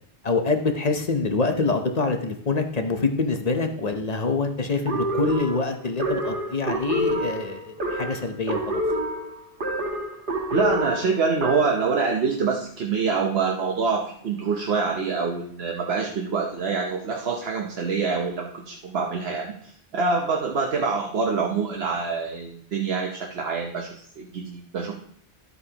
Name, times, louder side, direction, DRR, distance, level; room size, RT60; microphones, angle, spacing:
voice 1, 0.2-8.8, left 3 dB, 40° left, 6 dB, 0.9 m, -25 dB
sound 1, 4.9-11.9, right 1 dB, 50° right, 1.5 m, -28 dB
voice 2, 10.5-24.9, right 5 dB, 65° right, 1 dB, 1.1 m, -26 dB
12.0 x 8.1 x 2.9 m, 0.63 s
omnidirectional pair, 1.1 m